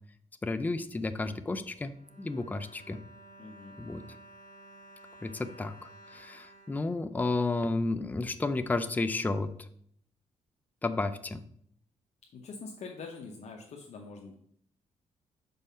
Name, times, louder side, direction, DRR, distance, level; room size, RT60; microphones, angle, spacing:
voice 1, 0.4-3.0 3.8-4.0 5.2-9.5 10.8-11.4, left 3 dB, 15° left, 10 dB, 0.4 m, -32 dB
Bowed string instrument, 1.7-7.7 8.4-8.5 8.8-8.9, right 1 dB, 85° right, 2.8 m, -54 dB
voice 2, 3.4-3.8 12.3-14.3, left 4 dB, 65° left, 0 dB, 0.8 m, -44 dB
5.5 x 4.1 x 5.5 m, 0.66 s
cardioid pair, 125°, 12 cm